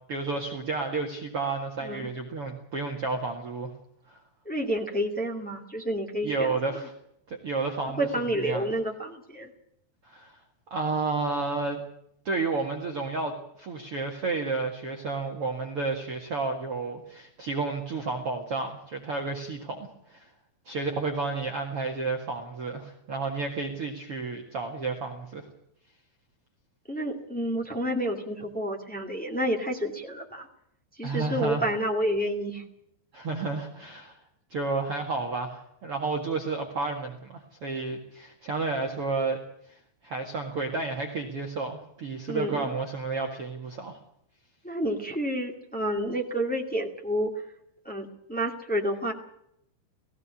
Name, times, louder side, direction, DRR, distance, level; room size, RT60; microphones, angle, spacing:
voice 1, 0.1-3.7 4.1-4.2 6.2-6.9 7.3-8.6 10.0-10.4 10.7-11.8 12.3-20.3 20.7-25.5 31.0-31.7 33.1-34.2 34.5-39.4 39.7-44.0, right 3 dB, 45° right, 2 dB, 2.1 m, -31 dB
voice 2, 4.4-6.6 7.9-9.5 26.9-30.5 31.0-32.6 42.3-42.7 44.6-47.3 47.8-49.1, equal, 10° left, 1 dB, 0.4 m, -29 dB
18.5 x 16.0 x 8.5 m, 0.74 s
omnidirectional pair, 4.9 m